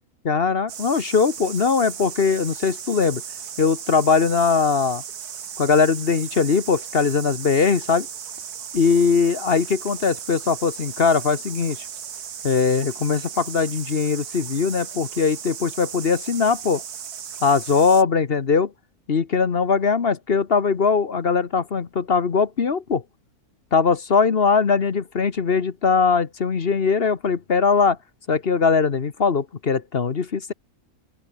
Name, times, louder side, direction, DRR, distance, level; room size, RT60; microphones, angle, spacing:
voice 1, 0.2-3.2 3.6-5.0 5.6-8.1 8.7-11.8 12.4-16.8 17.4-18.7 19.1-23.0 23.7-28.0 28.3-30.5, left 5 dB, 40° left, 1.3 m, -20 dB
sound 1, 0.7-18.0, right 8 dB, 90° right, 1.9 m, -36 dB
open air
omnidirectional pair, 1.6 m